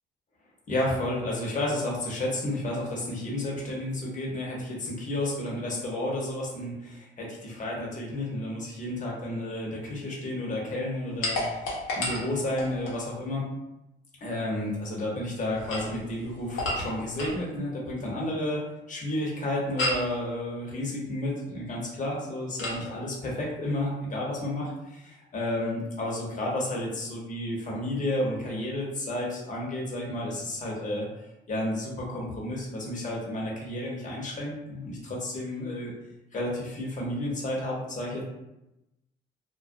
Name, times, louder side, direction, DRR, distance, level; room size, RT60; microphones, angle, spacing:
voice 1, 0.7-13.4 14.2-18.6 18.9-31.1 31.5-35.9 36.3-38.2, left 1 dB, 40° left, -3 dB, 0.8 m, -31 dB
sound 1, 11.2-13.0 15.5-17.4 19.8-20.1 22.6-22.8, left 1 dB, 85° left, 0.8 m, -31 dB
2.3 x 2.1 x 2.5 m, 0.93 s
cardioid pair, 90°, 20 cm